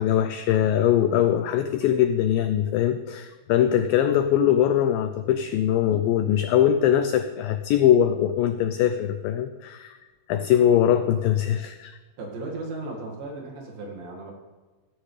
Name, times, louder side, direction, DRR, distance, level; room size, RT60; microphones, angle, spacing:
voice 1, 0.0-10.0 10.3-11.9, left 10 dB, 85° left, 9 dB, 2.0 m, -22 dB
voice 2, 12.2-14.3, right 2 dB, 65° right, -1 dB, 3.6 m, -35 dB
15.0 x 13.5 x 3.3 m, 1.3 s
omnidirectional pair, 4.6 m